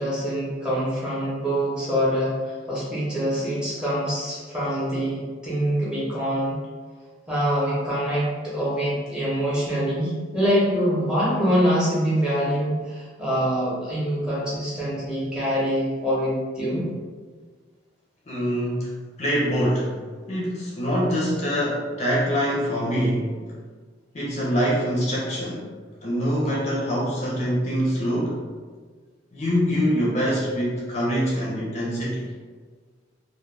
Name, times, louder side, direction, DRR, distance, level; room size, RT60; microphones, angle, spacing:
voice 1, 0.0-6.6 7.3-16.9, equal, 5° right, -8 dB, 0.7 m, -25 dB
voice 2, 18.3-18.9 19.2-20.0 20.3-23.4 24.1-25.7 26.0-28.4 29.3-32.3, equal, 35° left, -5 dB, 0.5 m, -24 dB
2.3 x 2.1 x 3.1 m, 1.5 s
head